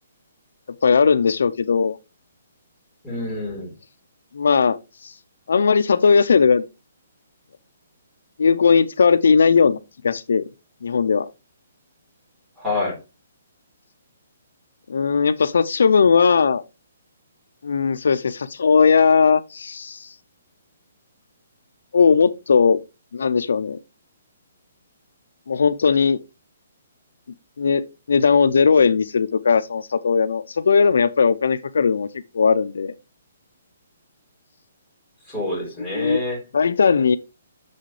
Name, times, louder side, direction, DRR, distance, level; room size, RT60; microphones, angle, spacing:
voice 1, 0.8-2.0 4.3-4.8 5.0-5.1 5.5-6.6 8.4-9.8 10.0-10.4 10.8-11.3 14.9-16.6 17.6-20.1 21.9-22.8 23.1-23.8 25.5-26.2 27.6-32.1 32.3-32.9 36.0-36.2 36.5-37.2, left 5 dB, 75° left, 0.5 m, -18 dB
voice 2, 3.0-3.7 12.6-13.0 35.2-36.4, left 2 dB, 5° right, 3.9 m, -27 dB
7.4 x 6.4 x 3.2 m
hypercardioid pair, 175°, 0 cm